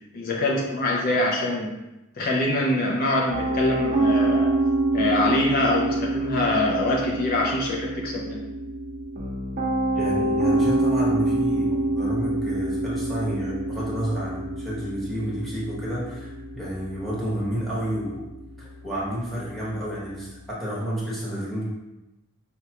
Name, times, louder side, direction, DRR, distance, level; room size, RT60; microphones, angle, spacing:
voice 1, 0.1-1.7 2.2-4.5 4.9-8.4, left 1 dB, 45° left, -1 dB, 0.4 m, -24 dB
Piano, 3.3-20.4, right 2 dB, 40° right, 0.7 m, -26 dB
voice 2, 9.9-18.3 18.6-21.6, equal, ahead, -8 dB, 1.0 m, -30 dB
4.8 x 2.2 x 2.8 m, 0.98 s
head